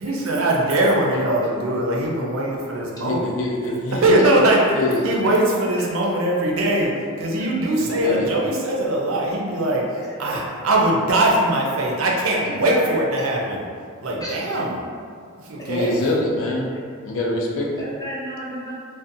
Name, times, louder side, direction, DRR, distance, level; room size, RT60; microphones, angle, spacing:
voice 1, 0.0-3.3 3.9-4.6 5.0-6.9 7.2-13.6 14.0-14.7 15.4-16.0, right 1 dB, 65° right, -2 dB, 0.5 m, -21 dB
voice 2, 3.0-4.2 4.7-5.0 7.8-8.3 15.7-16.7 17.0-17.9, left 2 dB, 65° left, -2 dB, 0.4 m, -24 dB
voice 3, 12.4-13.0 14.2-14.6 15.6-15.9 17.8-18.7, equal, 15° left, -8 dB, 0.6 m, -32 dB
2.6 x 2.1 x 2.5 m, 2.1 s
head